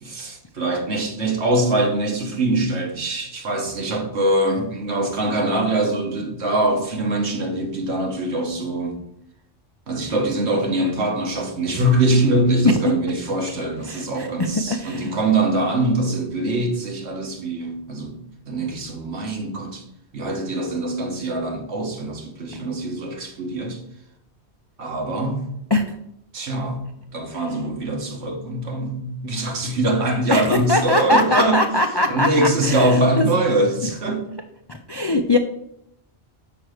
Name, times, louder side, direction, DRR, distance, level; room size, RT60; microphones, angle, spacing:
voice 1, 0.0-9.0 9.9-18.2 18.5-19.9 20.1-23.8 24.8-25.5 26.3-26.9 27.1-31.6 32.1-34.3, right 1 dB, 80° right, 1.4 m, -23 dB
voice 2, 13.9-14.3 14.7-15.2 25.7-25.8 30.3-32.3 32.6-33.3 34.7-35.4, left 2 dB, 45° left, 0.3 m, -21 dB
5.9 x 4.5 x 6.4 m
omnidirectional pair, 1.1 m